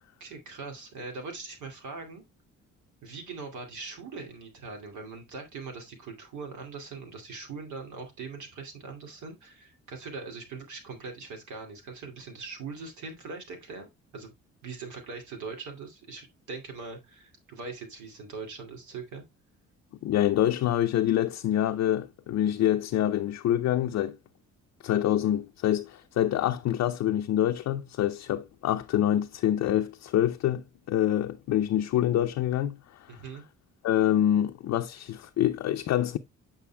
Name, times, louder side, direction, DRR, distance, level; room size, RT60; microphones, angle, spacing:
voice 1, 0.2-2.2 3.0-14.3 14.6-19.2 33.1-33.4, right 4 dB, 75° right, 2.4 m, -41 dB
voice 2, 20.0-24.2 24.8-33.2 33.8-36.2, left 11 dB, 60° left, 0.6 m, -26 dB
8.4 x 5.4 x 2.2 m
cardioid pair, 90°, 30 cm